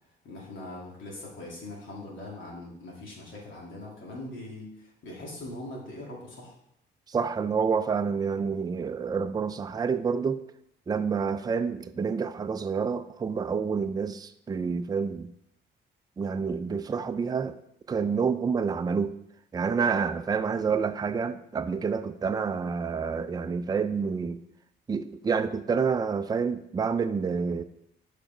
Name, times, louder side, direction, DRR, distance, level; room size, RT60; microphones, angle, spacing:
voice 1, 0.2-6.6 8.3-8.5, left 2 dB, 75° left, 2.2 m, -41 dB
voice 2, 7.1-10.4 10.9-15.3 16.2-17.6 17.9-19.1 19.5-24.4 24.9-27.6, right 5 dB, 20° right, 0.4 m, -28 dB
5.1 x 4.9 x 4.4 m
cardioid pair, 90°, 20 cm